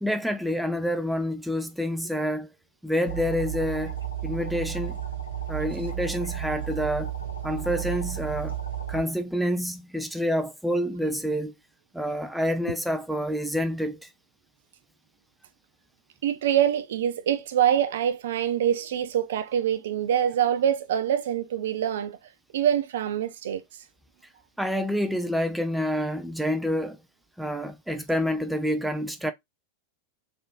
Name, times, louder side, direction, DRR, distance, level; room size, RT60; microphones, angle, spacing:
voice 1, 0.0-2.5 2.8-4.0 4.2-5.0 5.5-7.1 7.4-8.6 8.9-11.5 11.9-14.1 24.6-27.0 27.4-29.3, equal, ahead, 0.5 m, -28 dB
sound 1, 3.0-9.0, right 10 dB, 85° left, 1.0 m, -33 dB
voice 2, 16.2-22.2 22.5-23.6, right 10 dB, 60° right, 0.4 m, -25 dB
3.3 x 2.6 x 2.4 m
figure-of-eight pair, 90°, 0 cm